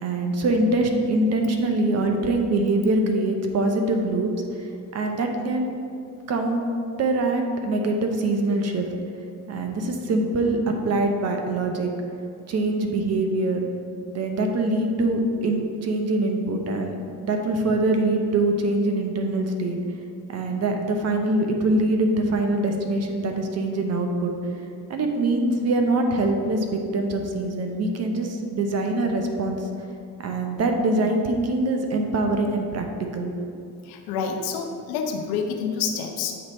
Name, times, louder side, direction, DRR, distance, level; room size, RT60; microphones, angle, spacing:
voice 1, 0.0-4.6 4.9-5.7 6.3-6.6 7.0-8.9 9.5-11.9 12.5-13.7 14.1-16.9 17.2-19.8 20.3-24.6 24.9-29.7 30.2-32.9 33.1-33.3, right 2 dB, 40° right, 4 dB, 0.8 m, -24 dB
voice 2, 33.9-36.3, left 6 dB, 65° left, 3 dB, 0.8 m, -28 dB
8.0 x 3.2 x 4.2 m, 2.5 s
supercardioid pair, 85°, 41 cm